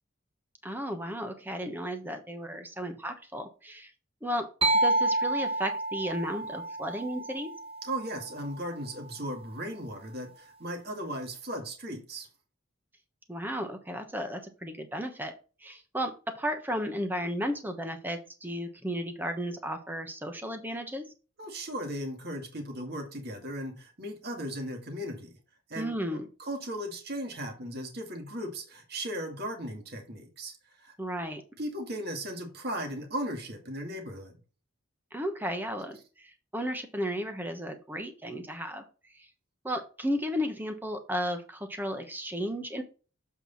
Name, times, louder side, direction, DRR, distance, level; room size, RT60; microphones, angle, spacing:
voice 1, 0.6-3.9 4.2-4.5 4.8-7.5 13.3-15.3 15.6-21.0 25.8-26.3 31.0-31.4 35.1-38.8 39.1-39.3 39.6-42.8, equal, 10° right, 6 dB, 1.1 m, -34 dB
sound 1, 4.6-8.3, right 2 dB, 30° right, 0.7 m, -29 dB
voice 2, 7.8-12.3 21.4-25.3 25.7-30.5 30.8-30.9 31.6-34.4, equal, 50° right, 2 dB, 2.0 m, -37 dB
7.6 x 4.7 x 4.0 m, 0.35 s
head